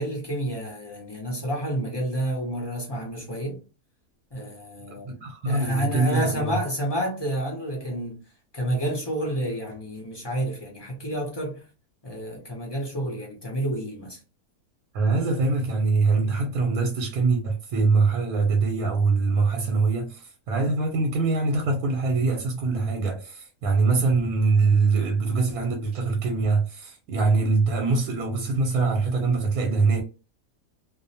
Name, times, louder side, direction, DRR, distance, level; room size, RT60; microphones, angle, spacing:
voice 1, 0.0-3.6 4.3-5.1 5.4-8.2 8.5-11.6 12.0-14.2, right 1 dB, 35° left, 0.4 m, -29 dB
voice 2, 4.9-6.6 14.9-30.0, right 4 dB, 80° right, 1.1 m, -23 dB
2.5 x 2.0 x 2.6 m
omnidirectional pair, 1.6 m